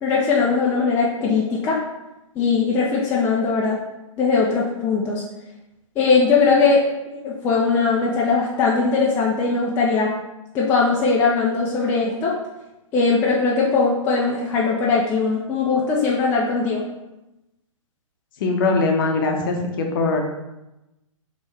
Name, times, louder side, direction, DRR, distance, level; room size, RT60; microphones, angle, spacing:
voice 1, 0.0-1.8 2.4-3.8 4.2-5.2 6.0-10.1 10.5-12.3 12.9-16.8, left 4 dB, 15° left, -4 dB, 0.4 m, -20 dB
voice 2, 18.4-20.2, left 3 dB, 40° left, 2 dB, 0.7 m, -21 dB
4.4 x 3.0 x 3.2 m, 0.96 s
figure-of-eight pair, 125°, 17 cm